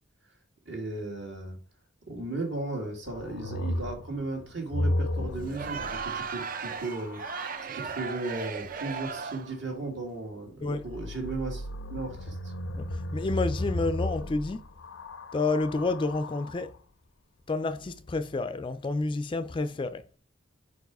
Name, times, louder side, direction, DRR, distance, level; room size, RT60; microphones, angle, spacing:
voice 1, 0.7-1.6 2.1-7.2 7.6-12.4, right 2 dB, 65° right, 1.9 m, -36 dB
sound 1, 3.1-7.7 10.7-16.8 17.7-18.4, left 1 dB, 80° left, 0.6 m, -35 dB
Crowd, 5.4-9.6, right 5 dB, 45° right, 0.5 m, -36 dB
voice 2, 13.1-14.6 15.3-16.7 17.5-20.0, left 3 dB, 25° left, 0.3 m, -29 dB
4.7 x 4.7 x 4.6 m
head